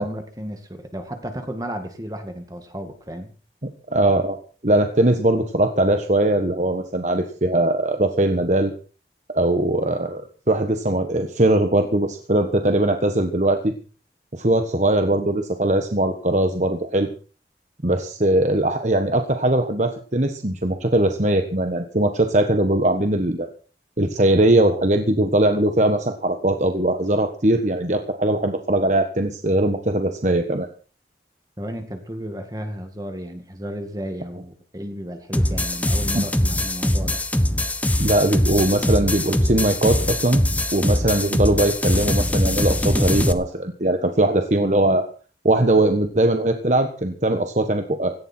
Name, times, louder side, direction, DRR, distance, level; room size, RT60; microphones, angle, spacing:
voice 1, 0.0-3.3 31.6-37.2, equal, 20° right, 6 dB, 2.1 m, -33 dB
voice 2, 3.9-4.4 4.6-8.7 9.3-13.7 14.3-17.1 17.8-23.5 24.0-30.7 36.1-36.2 38.0-40.4 40.7-45.1 45.4-48.1, right 1 dB, 40° right, 6 dB, 1.4 m, -20 dB
sound 1, 35.3-43.3, left 1 dB, 10° left, 1.0 m, -22 dB
17.5 x 15.0 x 4.5 m, 0.38 s
head